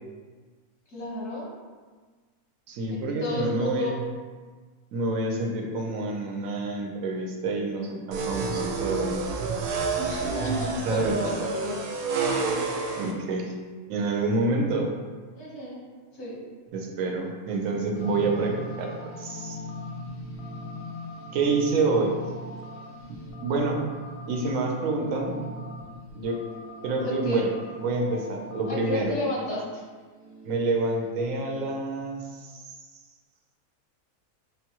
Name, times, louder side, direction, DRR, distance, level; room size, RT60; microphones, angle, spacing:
voice 1, 0.9-1.5 2.9-4.0 10.0-11.8 15.3-15.8 16.1-16.4 27.0-27.5 28.7-29.8, left 1 dB, 80° left, -5 dB, 1.7 m, -32 dB
voice 2, 2.7-4.0 4.9-9.2 10.9-11.2 13.0-13.5 13.9-14.9 16.7-19.6 21.3-22.2 23.1-23.8 24.3-25.4 26.1-26.4 26.8-27.5 27.8-29.1 30.4-32.6, right 3 dB, 65° right, 1 dB, 1.0 m, -27 dB
sound 1, 8.1-13.1, right 4 dB, 90° right, 1.1 m, -29 dB
sound 2, 17.9-31.7, left 1 dB, 55° left, 0.5 m, -40 dB
6.1 x 2.2 x 2.9 m, 1.5 s
omnidirectional pair, 1.6 m